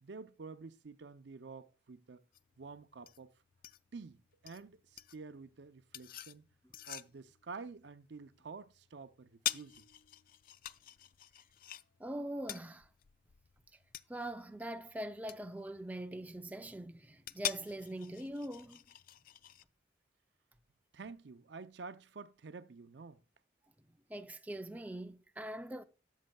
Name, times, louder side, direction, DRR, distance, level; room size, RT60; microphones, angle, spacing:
voice 1, 0.0-2.2 2.6-3.3 3.9-6.5 6.9-9.8 20.9-23.2, right 4 dB, 70° right, 0.6 m, -49 dB
sound 1, 2.3-19.6, left 12 dB, 50° left, 0.4 m, -46 dB
voice 2, 12.0-12.9 14.1-18.8 24.1-25.8, right 1 dB, 10° right, 0.5 m, -42 dB
13.0 x 7.4 x 2.3 m
head